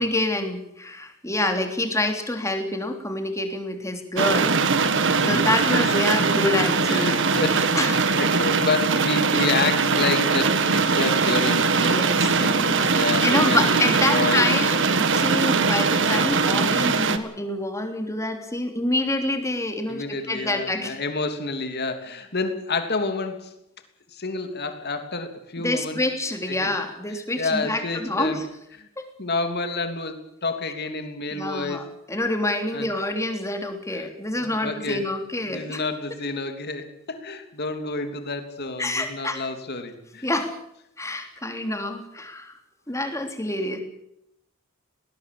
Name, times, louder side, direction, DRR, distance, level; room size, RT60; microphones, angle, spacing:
voice 1, 0.0-4.6 5.2-7.2 7.7-8.2 11.9-21.0 25.6-28.4 29.0-29.1 31.3-35.8 38.8-39.5 40.2-40.5 41.0-42.5 42.9-43.8, left 1 dB, 15° left, 5 dB, 3.3 m, -27 dB
sound 1, 4.2-17.2, right 4 dB, 60° right, 1.8 m, -21 dB
voice 2, 5.2-6.0 6.3-6.4 6.9-12.0 12.4-14.4 19.9-23.6 24.1-26.0 26.5-26.7 27.4-28.4 28.8-28.9 29.2-31.9 32.7-32.9 33.9-34.1 34.3-35.1 35.4-40.3 41.5-41.6, left 3 dB, 50° left, 7 dB, 3.1 m, -29 dB
20.0 x 19.0 x 8.6 m, 0.80 s
head